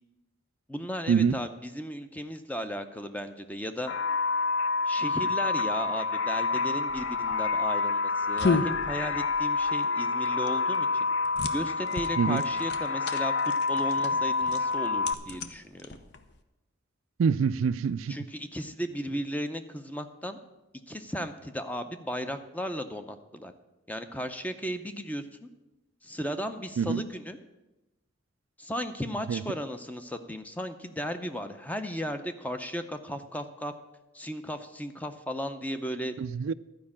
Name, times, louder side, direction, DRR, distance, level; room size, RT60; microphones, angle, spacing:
voice 1, 0.7-3.9 4.9-11.1 11.5-13.3 13.7-15.9 18.1-20.4 20.9-23.5 23.9-25.5 26.0-27.4 28.6-33.7 34.1-36.1, equal, 10° left, 0.6 m, -35 dB
sound 1, 3.9-15.1, left 4 dB, 80° left, 0.4 m, -28 dB
sound 2, 6.9-16.4, left 4 dB, 55° left, 0.7 m, -35 dB
voice 2, 17.2-18.2 26.8-27.0 29.3-29.4 36.2-36.5, right 6 dB, 80° right, 0.4 m, -25 dB
12.0 x 5.2 x 8.6 m
head